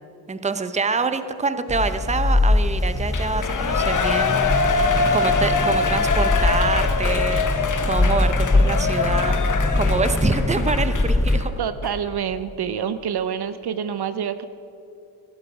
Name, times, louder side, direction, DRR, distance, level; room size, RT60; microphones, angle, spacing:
voice 1, 0.3-4.7 5.1-9.4 9.7-11.5, right 4 dB, 15° right, 10 dB, 0.8 m, -26 dB
sound 1, 1.7-11.4, left 2 dB, 10° left, 0.3 m, -22 dB
Shout / Cheering, 3.1-11.4 11.8-11.9, left 4 dB, 40° left, 1.1 m, -24 dB
voice 2, 11.6-14.4, right 8 dB, 55° right, 12 dB, 0.7 m, -27 dB
15.5 x 11.5 x 5.0 m, 2.9 s
cardioid pair, 85°, 47 cm